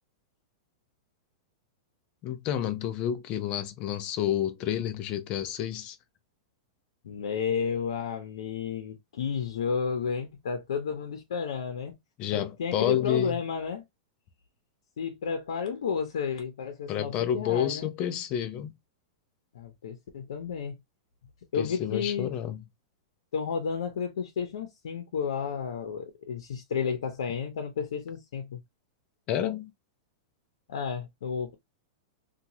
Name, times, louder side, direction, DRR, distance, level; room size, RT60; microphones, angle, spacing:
voice 1, 2.2-6.0 12.2-13.4 16.9-18.7 21.6-22.6 29.3-29.7, left 10 dB, 35° left, 0.4 m, -29 dB
voice 2, 7.0-12.0 12.3-13.8 15.0-17.9 19.5-20.8 21.5-22.3 23.3-28.6 30.7-31.5, left 6 dB, 85° left, 0.7 m, -32 dB
2.9 x 2.3 x 2.7 m
supercardioid pair, 150°, 3 cm